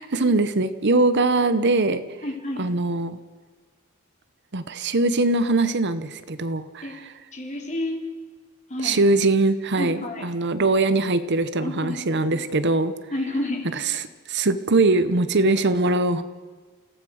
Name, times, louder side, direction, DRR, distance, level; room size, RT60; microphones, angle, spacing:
voice 1, 0.0-2.0 2.6-3.2 4.5-6.9 8.8-12.9 14.3-16.2, right 2 dB, 55° right, 12 dB, 1.0 m, -21 dB
voice 2, 2.2-2.7 6.8-7.0 7.3-8.1 8.7-9.0 9.8-10.3 11.6-12.4 13.1-13.7, left 1 dB, 35° left, 1 dB, 4.3 m, -30 dB
28.5 x 16.5 x 6.5 m, 1.4 s
head